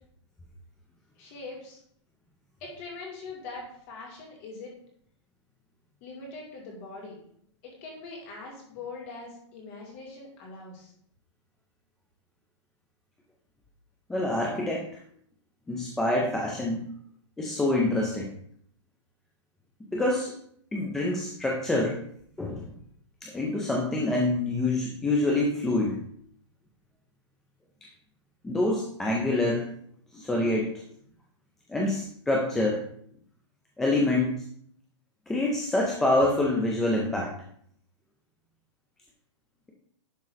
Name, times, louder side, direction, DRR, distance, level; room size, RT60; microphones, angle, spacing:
voice 1, 1.2-1.8 2.6-4.7 6.0-7.2 7.6-10.9, left 3 dB, 30° left, -1 dB, 2.4 m, -42 dB
voice 2, 14.1-14.9 15.7-16.9 17.4-18.3 19.9-20.3 20.7-22.0 22.4-22.7 23.2-26.0 28.4-29.7 30.1-30.7 31.7-32.8 33.8-34.4 35.3-37.3, left 2 dB, ahead, -2 dB, 0.3 m, -26 dB
10.5 x 3.6 x 4.9 m, 0.66 s
hypercardioid pair, 180°, 16 cm